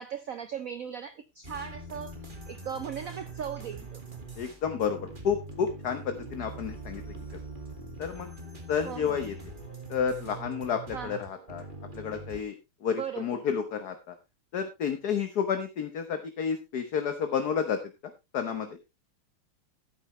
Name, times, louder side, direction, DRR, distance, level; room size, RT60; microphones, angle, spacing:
voice 1, 0.0-2.2 2.5-4.0 8.8-9.2 10.9-11.2 12.9-13.4, right 8 dB, 80° right, 0.7 m, -38 dB
sound 1, 1.4-12.4, right 2 dB, 25° right, 2.1 m, -43 dB
voice 2, 4.4-7.1 8.0-8.3 8.7-9.3 9.9-11.6 11.9-14.1 14.5-18.8, left 7 dB, 55° left, 1.5 m, -31 dB
13.0 x 9.6 x 3.1 m
omnidirectional pair, 2.3 m